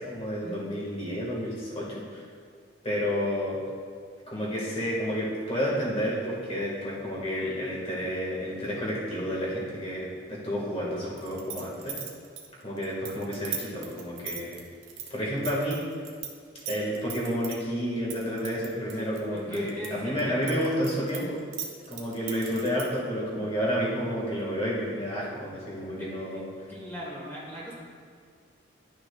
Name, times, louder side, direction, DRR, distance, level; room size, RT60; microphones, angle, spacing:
voice 1, 0.0-2.2 2.8-3.6 4.3-12.0 12.6-14.6 15.1-15.8 16.7-21.4 21.9-26.5, equal, 30° left, -5 dB, 1.8 m, -30 dB
sound 1, 11.2-16.3 16.6-17.6 18.1-19.9 20.2-23.0, right 8 dB, 80° right, 1.1 m, -37 dB
voice 2, 19.0-20.5 26.0-27.7, equal, 10° left, -6 dB, 1.5 m, -40 dB
11.5 x 6.0 x 2.4 m, 2.1 s
head